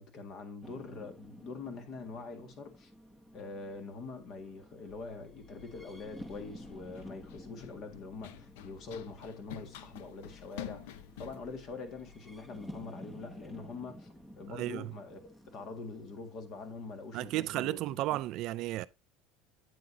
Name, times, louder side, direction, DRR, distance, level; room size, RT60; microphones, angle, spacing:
voice 1, 0.0-2.9 3.3-14.1 14.3-15.2 15.5-18.2, left 4 dB, 45° left, 1.8 m, -44 dB
sound 1, 0.6-18.3, equal, 10° left, 0.9 m, -53 dB
Run, 4.9-12.8, left 11 dB, 85° left, 0.7 m, -50 dB
voice 2, 14.5-14.9 17.1-18.9, right 16 dB, 55° right, 0.4 m, -33 dB
8.6 x 7.9 x 2.7 m
cardioid pair, 140°, 0 cm